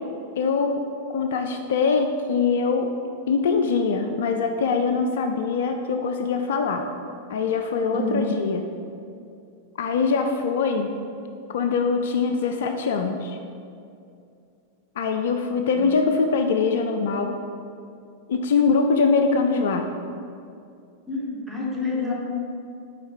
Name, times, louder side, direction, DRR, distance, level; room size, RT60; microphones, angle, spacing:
voice 1, 0.4-0.8 1.1-2.9 3.3-6.9 7.3-8.6 9.8-11.0 11.5-13.4 15.0-17.3 18.3-19.9, left 5 dB, 60° left, 5 dB, 0.3 m, -23 dB
voice 2, 7.9-8.3 15.8-15.9 21.1-22.1, left 3 dB, 5° right, -5 dB, 1.4 m, -28 dB
5.6 x 4.6 x 4.5 m, 2.5 s
figure-of-eight pair, 90°, 0 cm